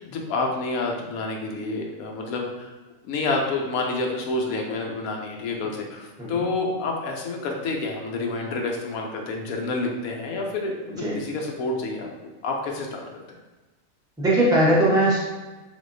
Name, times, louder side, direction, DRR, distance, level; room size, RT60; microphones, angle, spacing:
voice 1, 0.0-2.7 3.0-13.0, left 3 dB, 90° left, 0 dB, 1.1 m, -28 dB
voice 2, 14.2-15.2, right 1 dB, 5° right, -6 dB, 0.7 m, -19 dB
3.5 x 3.4 x 2.6 m, 1.2 s
omnidirectional pair, 1.4 m